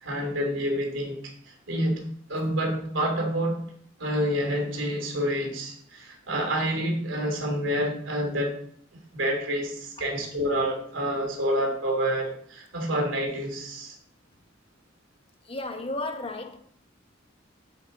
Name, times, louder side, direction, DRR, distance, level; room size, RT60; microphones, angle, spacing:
voice 1, 0.0-2.0 2.3-3.6 4.0-8.6 9.1-14.0, equal, 80° right, 2.9 m, -28 dB
voice 2, 15.5-16.6, left 2 dB, 30° left, 1.1 m, -33 dB
11.0 x 7.7 x 3.9 m
head